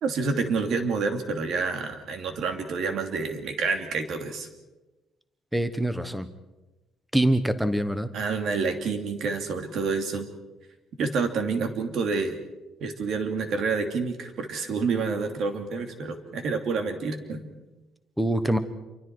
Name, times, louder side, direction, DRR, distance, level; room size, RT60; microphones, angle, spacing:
voice 1, 0.0-4.5 8.1-10.3 11.0-12.4 12.8-17.4, right 4 dB, 50° right, 5 dB, 2.8 m, -28 dB
voice 2, 5.5-6.3 7.1-8.1 18.2-18.6, right 1 dB, ahead, 11 dB, 1.1 m, -24 dB
28.5 x 23.5 x 4.8 m, 1.1 s
cardioid pair, 175°, 0 cm